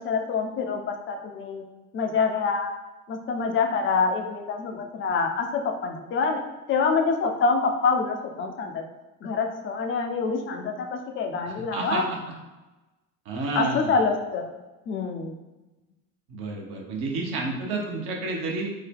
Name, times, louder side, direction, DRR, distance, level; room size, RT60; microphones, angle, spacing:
voice 1, 0.0-1.6 1.9-2.7 3.1-6.4 6.7-8.8 9.2-12.0 13.6-14.5 14.9-15.4, left 4 dB, 30° left, 4 dB, 0.5 m, -26 dB
voice 2, 11.5-12.2 13.3-13.9 16.3-18.7, right 3 dB, 60° right, 0 dB, 1.0 m, -30 dB
3.8 x 2.1 x 3.4 m, 1.1 s
hypercardioid pair, 75°, 44 cm